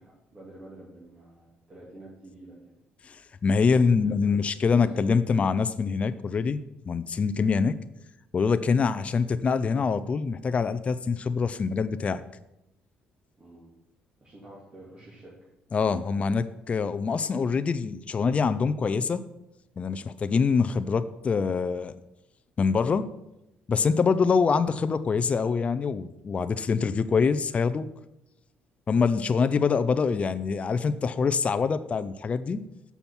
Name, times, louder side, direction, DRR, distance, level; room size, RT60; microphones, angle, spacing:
voice 1, 0.0-2.7 3.7-4.4 4.7-4.9 13.4-13.7 14.2-15.4, right 1 dB, 30° right, -5 dB, 2.6 m, -48 dB
voice 2, 3.0-7.8 8.3-12.2 15.7-19.2 19.8-22.0 22.6-23.1 23.7-27.9 28.9-32.6, left 5 dB, 35° left, 11 dB, 0.5 m, -25 dB
7.0 x 5.9 x 7.1 m, 0.89 s
cardioid pair, 100°, 4 cm